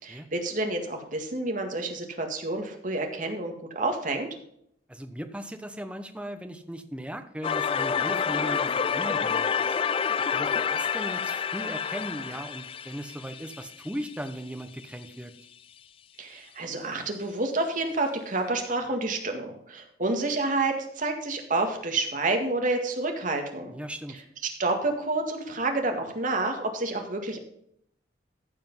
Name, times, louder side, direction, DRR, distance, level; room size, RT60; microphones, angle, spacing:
voice 1, 0.0-4.3 16.2-23.7 24.4-27.4, right 2 dB, 45° right, 3 dB, 2.0 m, -29 dB
voice 2, 4.9-9.8 10.3-15.3 23.7-24.2, equal, 5° right, 7 dB, 0.9 m, -38 dB
sound 1, 7.4-14.3, left 6 dB, 30° left, 0.3 m, -28 dB
14.5 x 5.2 x 5.5 m, 0.70 s
head